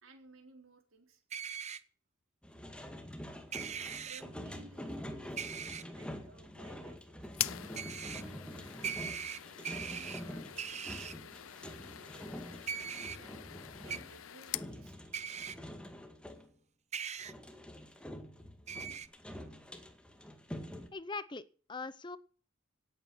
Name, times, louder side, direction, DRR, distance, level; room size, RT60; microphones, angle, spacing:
voice 1, 0.0-1.2 4.0-9.1 9.5-12.2 12.7-13.4 13.8-15.4, right 3 dB, 80° right, 5 dB, 4.2 m, -60 dB
sound 1, 1.3-1.8 3.5-4.2 5.4-5.8 7.7-8.2 8.8-10.2 10.6-11.1 12.7-13.2 13.9-14.0 15.1-15.5 16.9-17.3 18.7-19.1, right 7 dB, 35° right, 0.7 m, -40 dB
sound 2, 2.4-16.5 17.2-20.9, equal, 5° left, 1.9 m, -46 dB
sound 3, 7.3-14.7, left 14 dB, 85° left, 0.6 m, -44 dB
voice 2, 20.9-22.2, left 3 dB, 25° left, 17 dB, 0.6 m, -41 dB
17.5 x 8.7 x 6.3 m, 0.42 s
head